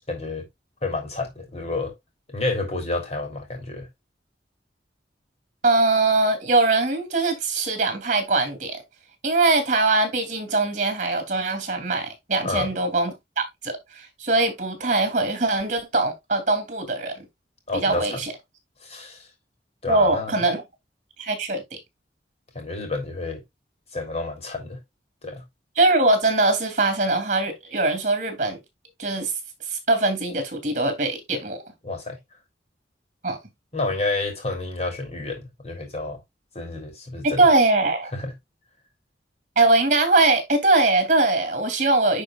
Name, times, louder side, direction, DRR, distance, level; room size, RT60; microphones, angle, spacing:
voice 1, 0.1-0.5 0.8-1.9 2.3-3.9 12.4-12.7 17.7-18.2 18.8-19.3 19.8-20.4 22.5-23.4 23.9-24.8 25.2-25.4 31.8-32.2 33.7-36.2 36.6-37.4 38.1-38.3, left 3 dB, 35° left, 3.4 m, -29 dB
voice 2, 5.6-8.8 9.2-17.3 17.7-18.3 19.9-20.6 21.2-21.8 25.8-28.6 29.0-29.3 29.7-31.6 33.2-33.4 37.2-38.1 39.6-42.2, right 2 dB, 45° right, 2.8 m, -22 dB
10.5 x 4.6 x 2.3 m
head